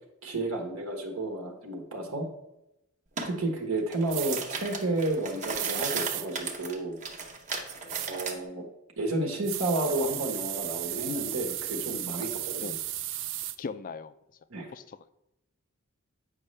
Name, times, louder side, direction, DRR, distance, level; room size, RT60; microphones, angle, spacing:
voice 1, 0.2-2.3 3.2-7.0 8.1-8.6 9.0-12.8 14.5-14.7, right 2 dB, 75° right, 2 dB, 1.3 m, -31 dB
sound 1, 3.2-3.3 3.8-8.4, right 4 dB, 35° right, 0.9 m, -36 dB
sound 2, 4.1-4.4 5.5-6.3 7.9-8.1 9.4-13.6, right 14 dB, 60° right, 0.4 m, -34 dB
voice 2, 13.6-14.1 14.7-15.1, left 5 dB, 40° left, 13 dB, 0.3 m, -39 dB
8.3 x 5.3 x 3.2 m, 0.87 s
head